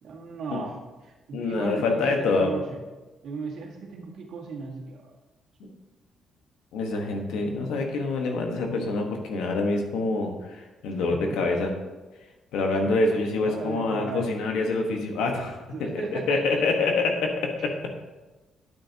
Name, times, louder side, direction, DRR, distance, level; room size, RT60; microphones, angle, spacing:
voice 1, 0.0-2.8 3.2-5.1 11.3-11.4 12.8-13.0 13.2-14.3 15.7-16.8, right 4 dB, 70° right, -1 dB, 1.8 m, -36 dB
voice 2, 1.3-2.5 6.7-11.7 12.5-15.6 16.3-17.7, left 3 dB, 90° left, 2 dB, 1.3 m, -26 dB
9.1 x 8.8 x 2.9 m, 1.2 s
cardioid pair, 90°, 0 cm